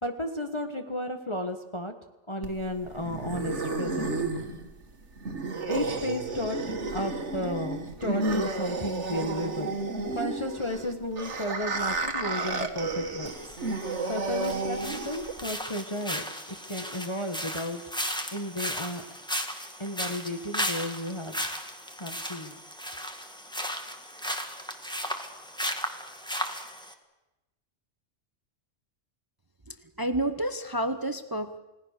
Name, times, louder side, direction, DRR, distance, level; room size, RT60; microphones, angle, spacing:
voice 1, 0.0-1.9 2.3-4.1 5.7-9.7 10.1-13.6 14.1-17.8 18.3-19.0 19.8-21.4 22.0-22.6, left 1 dB, 25° left, 4 dB, 1.4 m, -33 dB
sound 1, 2.4-15.4, right 3 dB, 75° right, 2.1 m, -32 dB
sound 2, 13.2-26.9, equal, 5° left, 1.8 m, -35 dB
voice 2, 29.7-31.6, right 1 dB, 20° right, 10 dB, 0.8 m, -30 dB
30.0 x 18.0 x 6.7 m, 1.0 s
omnidirectional pair, 1.2 m